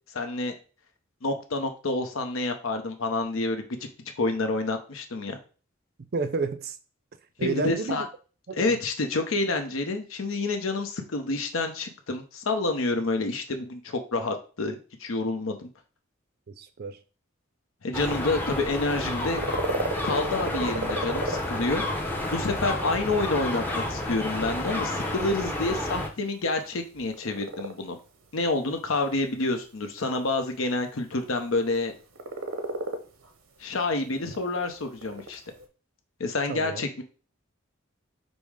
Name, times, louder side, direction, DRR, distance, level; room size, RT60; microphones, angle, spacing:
voice 1, 0.1-0.5 1.2-3.8 4.2-5.4 7.4-8.0 8.5-14.7 15.0-15.7 17.8-19.4 20.0-21.8 22.3-28.0 28.3-31.9 33.6-35.4 36.2-37.0, left 2 dB, 80° left, 0.7 m, -28 dB
voice 2, 6.1-6.8 7.4-8.1 8.5-8.8 16.5-17.0 36.5-36.9, right 4 dB, 50° right, 0.4 m, -30 dB
sound 1, 17.9-26.1, left 1 dB, 10° left, 0.6 m, -30 dB
sound 2, 19.0-35.7, right 2 dB, 85° right, 0.7 m, -37 dB
5.4 x 2.1 x 4.7 m
head